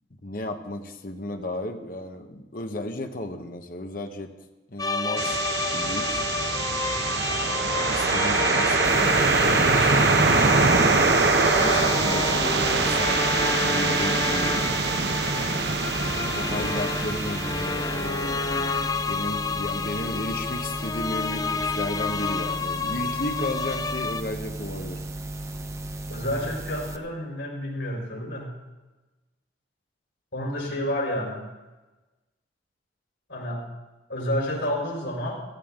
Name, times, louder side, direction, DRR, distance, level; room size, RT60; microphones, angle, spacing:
voice 1, 0.2-4.3 4.7-5.4 5.7-6.2 7.9-10.0 11.3-14.6 16.3-18.7 19.1-25.0, left 1 dB, 50° left, 5 dB, 1.2 m, -34 dB
sound 1, 4.8-24.2, left 4 dB, 20° left, 0.4 m, -29 dB
sound 2, 5.2-19.0, right 4 dB, 65° right, 1.0 m, -24 dB
sound 3, 8.8-27.0, right 1 dB, 15° right, 0.7 m, -35 dB
voice 2, 26.1-28.5 30.3-31.5 33.3-33.6 34.1-35.3, left 1 dB, 90° left, -1 dB, 5.3 m, -29 dB
16.0 x 15.0 x 3.8 m, 1.1 s
head